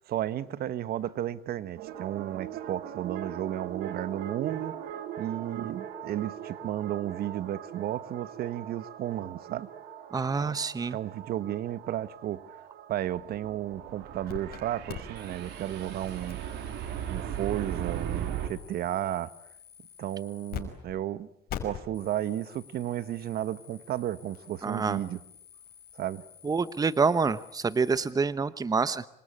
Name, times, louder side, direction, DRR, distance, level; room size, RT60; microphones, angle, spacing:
voice 1, 0.0-9.7 10.4-10.6 10.9-12.6 12.9-16.4 17.1-19.3 20.0-21.3 21.6-25.2 25.9-26.2, right 12 dB, 65° right, 1.3 m, -33 dB
sound 1, 1.8-18.5, right 10 dB, 85° right, 3.0 m, -39 dB
voice 2, 10.1-11.0 24.6-25.0 26.4-29.1, right 4 dB, 20° right, 1.0 m, -27 dB
sound 2, 14.3-14.6 14.9-20.6 20.9-21.0 21.5-28.1, left 10 dB, 65° left, 5.3 m, -46 dB
27.0 x 25.0 x 8.7 m
cardioid pair, 110°, 17 cm